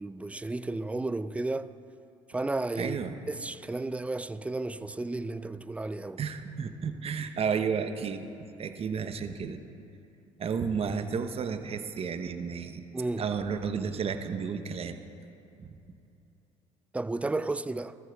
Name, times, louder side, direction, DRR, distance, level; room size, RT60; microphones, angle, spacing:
voice 1, 0.0-1.7 2.3-3.0 3.3-6.2 12.9-13.3 16.9-18.0, right 2 dB, 10° right, 0.4 m, -33 dB
voice 2, 2.8-3.1 6.2-9.6 10.4-12.8 13.2-15.0 15.6-15.8, right 6 dB, 40° right, 0.9 m, -32 dB
19.0 x 14.0 x 2.3 m
hypercardioid pair, 60°, 15 cm